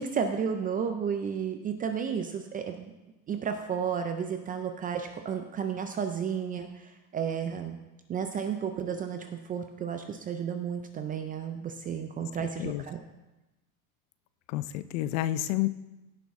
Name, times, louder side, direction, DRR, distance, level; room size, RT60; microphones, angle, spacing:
voice 1, 0.0-2.9 3.3-7.8 8.1-13.0, right 7 dB, 20° right, 6 dB, 0.4 m, -32 dB
voice 2, 14.5-15.7, left 14 dB, 55° left, 14 dB, 0.7 m, -29 dB
16.0 x 6.2 x 3.6 m, 1.0 s
supercardioid pair, 125°, 49 cm